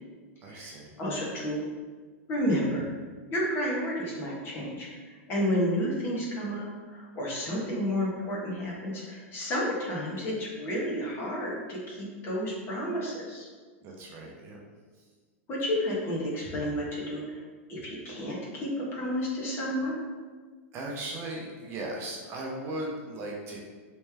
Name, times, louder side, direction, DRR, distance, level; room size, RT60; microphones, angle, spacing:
voice 1, 0.4-0.9 13.8-14.6 20.7-23.6, right 1 dB, 35° right, -2 dB, 0.7 m, -37 dB
voice 2, 1.0-1.7 2.3-2.9 3.3-13.5 15.5-17.4 17.7-20.0, equal, 30° left, -4 dB, 1.0 m, -31 dB
3.2 x 3.1 x 3.3 m, 1.4 s
supercardioid pair, 140°, 7 cm